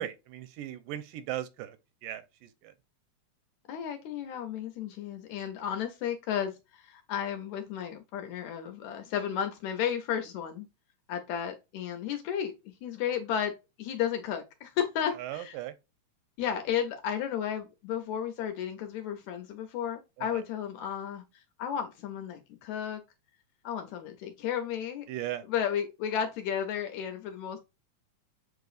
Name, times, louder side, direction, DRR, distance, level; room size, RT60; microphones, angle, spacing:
voice 1, 0.0-1.8 2.0-2.7 15.2-15.7 20.2-20.4 25.1-25.4, right 13 dB, 85° right, 2.2 m, -37 dB
voice 2, 3.7-10.7 11.1-15.6 16.4-23.0 23.6-25.1 25.5-27.6, left 9 dB, 75° left, 1.8 m, -33 dB
7.7 x 2.9 x 2.4 m
omnidirectional pair, 3.7 m